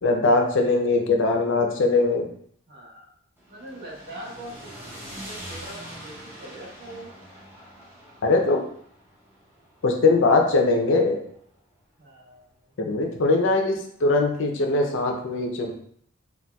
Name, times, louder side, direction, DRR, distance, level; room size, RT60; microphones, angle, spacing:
voice 1, 0.0-2.3 8.2-8.7 9.8-11.2 12.8-15.7, left 3 dB, 60° left, 3 dB, 0.5 m, -21 dB
voice 2, 0.5-0.9 2.7-3.1 3.5-7.1 12.0-12.6, right 1 dB, 50° right, -4 dB, 0.8 m, -43 dB
sound 1, 3.4-11.6, equal, 10° right, 0.7 m, -44 dB
4.0 x 2.3 x 2.2 m, 0.64 s
head